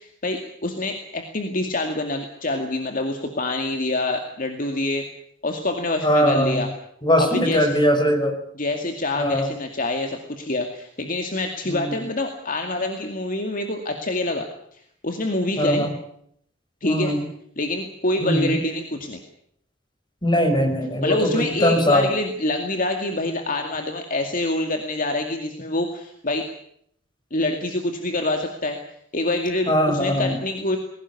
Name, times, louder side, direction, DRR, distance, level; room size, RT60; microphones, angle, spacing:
voice 1, 0.0-5.1 5.4-6.7 7.2-7.7 8.6-14.5 15.0-15.8 16.8-17.2 17.6-19.2 21.0-26.5 27.3-28.8 29.1-30.8, left 2 dB, 45° left, 4 dB, 2.2 m, -26 dB
voice 2, 6.0-6.6 7.0-8.3 9.2-9.5 11.7-12.0 15.6-15.9 16.8-17.2 18.2-18.6 20.2-22.1 29.7-30.4, equal, 25° left, 4 dB, 5.4 m, -20 dB
20.5 x 17.5 x 9.7 m, 0.69 s
head